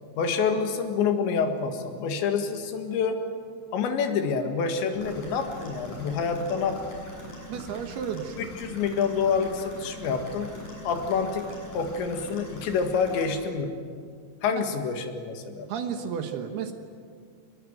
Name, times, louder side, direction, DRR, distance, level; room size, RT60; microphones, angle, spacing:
voice 1, 0.2-3.2 3.7-7.0 8.4-10.5 10.9-11.5 11.7-13.7 14.4-15.7, left 5 dB, 75° left, 5 dB, 4.0 m, -27 dB
sound 1, 4.9-13.3, left 1 dB, 45° left, 8.7 m, -42 dB
voice 2, 7.5-8.4 14.5-14.6 15.7-16.7, right 7 dB, 70° right, 6 dB, 3.0 m, -32 dB
25.0 x 21.0 x 9.3 m, 2.2 s
omnidirectional pair, 5.3 m